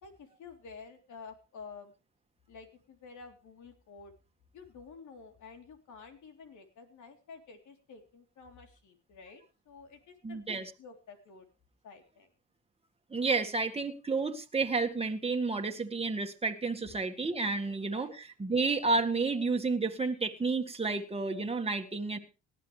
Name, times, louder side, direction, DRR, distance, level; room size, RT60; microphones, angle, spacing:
voice 1, 0.0-1.9 2.5-4.1 4.5-11.5 11.8-12.3 16.8-16.9 17.7-18.1, left 5 dB, 75° left, 5 dB, 3.7 m, -51 dB
voice 2, 10.2-10.7 13.1-22.2, right 3 dB, 20° right, 5 dB, 1.9 m, -31 dB
18.5 x 12.5 x 3.4 m, 0.31 s
cardioid pair, 90°, 30 cm